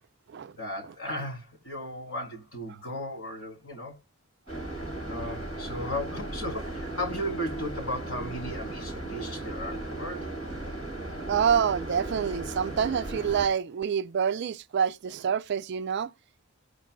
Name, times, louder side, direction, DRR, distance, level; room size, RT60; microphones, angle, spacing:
voice 1, 0.6-4.0 5.1-10.3, equal, 65° left, 3.4 m, -35 dB
sound 1, 4.5-13.5, right 2 dB, 30° left, 6.4 m, -36 dB
voice 2, 11.3-16.1, right 7 dB, 55° right, 0.4 m, -27 dB
17.5 x 6.0 x 2.2 m
head